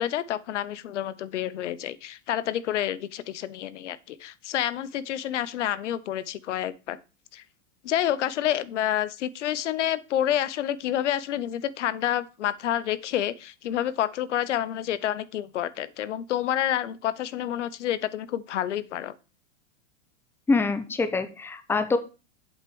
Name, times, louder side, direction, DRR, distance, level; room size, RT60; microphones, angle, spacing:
voice 1, 0.0-7.0 7.3-7.4 7.8-19.2, left 11 dB, 85° left, 0.8 m, -28 dB
voice 2, 20.5-22.0, left 3 dB, 5° left, 0.7 m, -25 dB
8.1 x 4.4 x 6.8 m
hypercardioid pair, 130°, 35 cm